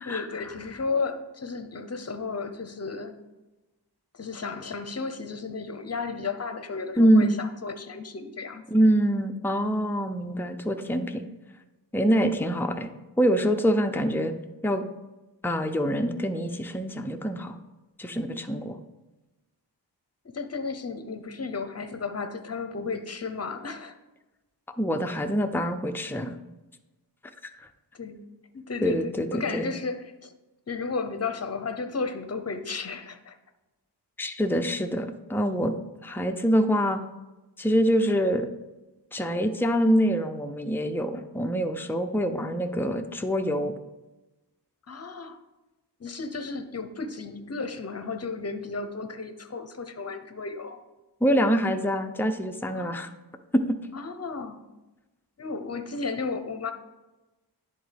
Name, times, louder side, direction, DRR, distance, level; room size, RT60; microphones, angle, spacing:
voice 1, 0.1-3.2 4.1-8.6 20.2-24.0 27.9-28.2 28.5-30.3 30.7-33.4 44.9-45.4 46.0-50.8 52.7-53.0 53.9-54.6 55.4-56.7, left 4 dB, 35° left, 8 dB, 0.7 m, -33 dB
voice 2, 7.0-7.4 8.7-11.3 11.9-12.9 13.2-14.3 14.6-14.8 15.4-17.6 18.0-18.8 24.8-26.4 27.4-27.7 28.8-29.7 34.2-35.7 36.0-37.0 37.6-38.5 39.1-43.7 51.2-53.1 53.5-53.8, equal, 5° left, 6 dB, 0.5 m, -25 dB
10.5 x 3.9 x 3.4 m, 1.1 s
wide cardioid pair, 70°, 42 cm